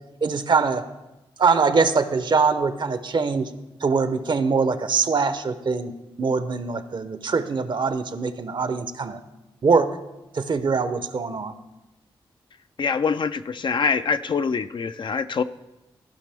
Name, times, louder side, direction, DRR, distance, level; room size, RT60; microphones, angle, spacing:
voice 1, 0.2-0.8 1.4-3.5 3.8-5.9 6.2-9.2 9.6-9.9 10.3-11.5, right 4 dB, 50° right, 11 dB, 0.6 m, -22 dB
voice 2, 12.8-15.4, left 5 dB, 50° left, 11 dB, 0.4 m, -24 dB
14.5 x 5.1 x 3.4 m, 0.99 s
cardioid pair, 55°, 10 cm